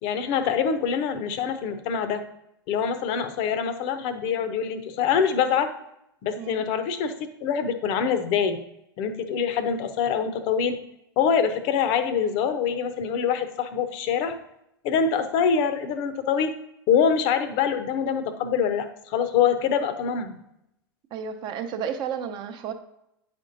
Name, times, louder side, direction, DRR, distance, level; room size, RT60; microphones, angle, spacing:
voice 1, 0.0-2.2 2.7-5.7 6.2-8.6 9.0-10.8 11.2-14.4 14.8-16.5 16.9-20.4, left 7 dB, 45° left, 10 dB, 0.7 m, -24 dB
voice 2, 21.1-22.7, right 7 dB, 40° right, 7 dB, 0.7 m, -32 dB
8.8 x 5.2 x 2.6 m, 0.81 s
figure-of-eight pair, 90°, 12 cm